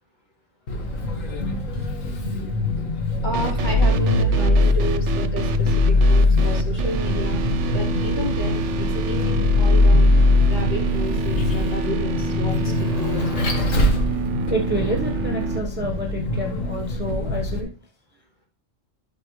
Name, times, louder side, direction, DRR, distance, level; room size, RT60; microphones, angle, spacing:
Vehicle, 0.7-17.6, left 2 dB, 90° left, 1.9 m, -21 dB
voice 1, 3.2-7.4 7.7-10.1 10.5-13.4, left 1 dB, 50° left, -3 dB, 3.4 m, -31 dB
sound 1, 3.3-15.6, right 5 dB, 70° right, 1.0 m, -29 dB
voice 2, 14.5-17.7, right 1 dB, 10° right, -1 dB, 1.0 m, -28 dB
11.5 x 6.2 x 3.2 m, 0.43 s
omnidirectional pair, 1.3 m